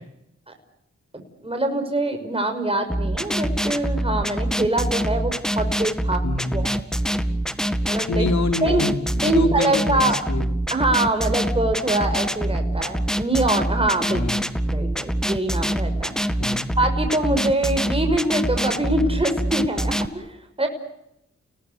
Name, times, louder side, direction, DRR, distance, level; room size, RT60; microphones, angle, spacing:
voice 1, 1.1-6.2 6.5-6.7 7.9-8.3 8.6-8.9 9.2-10.3 10.7-14.2 14.7-16.4 16.8-20.7, right 2 dB, 20° right, 5 dB, 6.0 m, -24 dB
sound 1, 2.9-20.1, right 1 dB, ahead, 2.0 m, -25 dB
voice 2, 6.2-6.7 8.1-10.5 14.1-14.5 16.4-16.7, left 3 dB, 70° left, 6 dB, 4.5 m, -27 dB
30.0 x 19.0 x 8.2 m, 0.80 s
cardioid pair, 50°, 29 cm